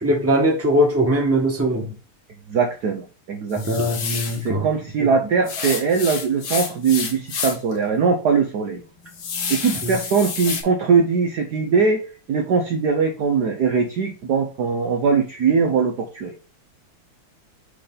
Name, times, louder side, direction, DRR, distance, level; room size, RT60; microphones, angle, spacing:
voice 1, 0.0-1.9 3.6-4.7 5.0-5.1 9.8-10.0, equal, 5° right, 0 dB, 1.3 m, -21 dB
voice 2, 2.5-3.9 4.4-8.8 9.5-12.0 12.3-16.3, right 5 dB, 60° right, 3 dB, 1.1 m, -21 dB
sound 1, 3.5-4.4 5.5-7.7 8.1-8.2 8.7-10.6, left 5 dB, 65° left, 2.2 m, -29 dB
6.7 x 3.9 x 3.9 m, 0.34 s
omnidirectional pair, 2.4 m